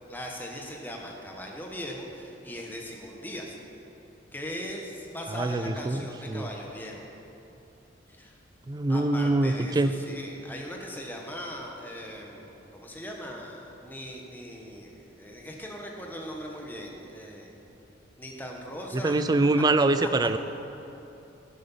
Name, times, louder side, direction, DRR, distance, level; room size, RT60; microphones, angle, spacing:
voice 1, 0.1-3.6 4.3-7.1 8.1-8.3 8.9-17.5 18.2-19.2 20.0-20.1, equal, 10° left, 0 dB, 1.2 m, -39 dB
voice 2, 5.3-6.5 8.7-9.9 18.9-20.4, right 2 dB, 20° right, 11 dB, 0.4 m, -24 dB
11.0 x 8.8 x 5.6 m, 3.0 s
head